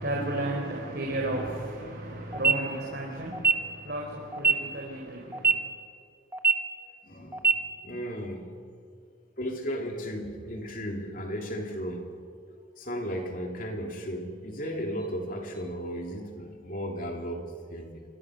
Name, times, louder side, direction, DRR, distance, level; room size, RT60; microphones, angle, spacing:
voice 1, 0.0-5.6, right 1 dB, 55° right, 4.1 m, -33 dB
sound 1, 2.3-2.5 3.3-3.5 4.3-4.5 5.3-5.5 6.3-6.5 7.3-7.5, right 5 dB, 10° right, 1.3 m, -21 dB
voice 2, 6.8-7.5 7.8-8.5 9.4-12.1 12.8-18.0, equal, 45° left, 3.1 m, -35 dB
28.0 x 25.5 x 6.5 m
head